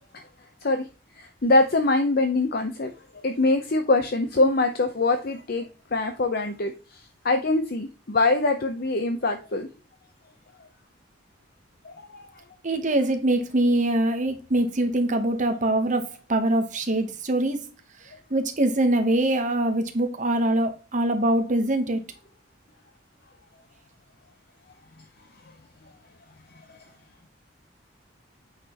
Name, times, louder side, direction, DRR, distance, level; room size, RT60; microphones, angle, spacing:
voice 1, 1.2-2.9 3.2-5.7 5.9-6.7 7.2-9.7 11.8-12.3, left 2 dB, 50° left, 0.7 m, -23 dB
voice 2, 12.6-17.6 18.3-22.0, right 1 dB, 40° right, 0.9 m, -23 dB
8.9 x 5.8 x 2.9 m
head